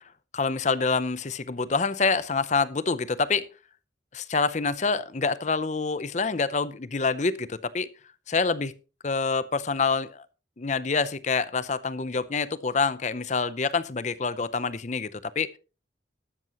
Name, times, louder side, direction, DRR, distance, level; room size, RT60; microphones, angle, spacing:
voice 1, 0.3-3.5 4.1-7.9 8.3-8.7 9.0-10.2 10.6-15.6, left 4 dB, 40° left, 0.6 m, -26 dB
13.5 x 12.5 x 3.0 m
head